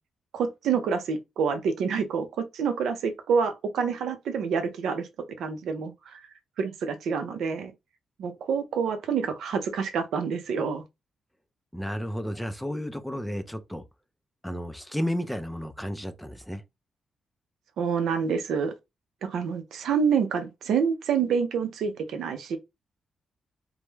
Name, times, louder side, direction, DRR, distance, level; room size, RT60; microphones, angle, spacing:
voice 1, 0.3-5.1 5.4-6.3 6.6-7.7 8.2-10.8 17.8-18.7 19.2-22.6, right 6 dB, 85° right, 0.4 m, -27 dB
voice 2, 11.7-13.8 14.4-16.6, equal, 5° left, 0.3 m, -32 dB
2.2 x 2.0 x 3.0 m
cardioid pair, 105°, 0 cm